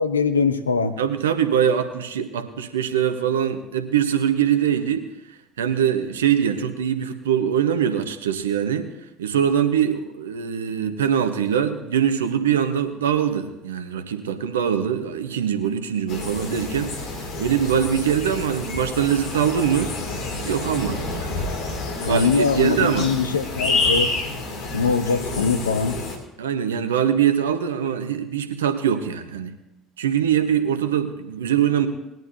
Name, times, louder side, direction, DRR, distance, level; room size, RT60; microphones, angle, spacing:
voice 1, 0.0-1.0 22.0-24.1 24.7-26.0, left 5 dB, 90° left, 9 dB, 0.8 m, -22 dB
voice 2, 1.0-8.9 9.2-19.9 20.4-21.6 22.0-23.1 26.4-29.5 30.0-31.9, right 8 dB, 80° right, 9 dB, 1.0 m, -23 dB
sound 1, 16.1-26.2, left 3 dB, 60° left, 2.5 m, -28 dB
19.5 x 10.5 x 2.7 m, 0.93 s
hypercardioid pair, 60°, 0 cm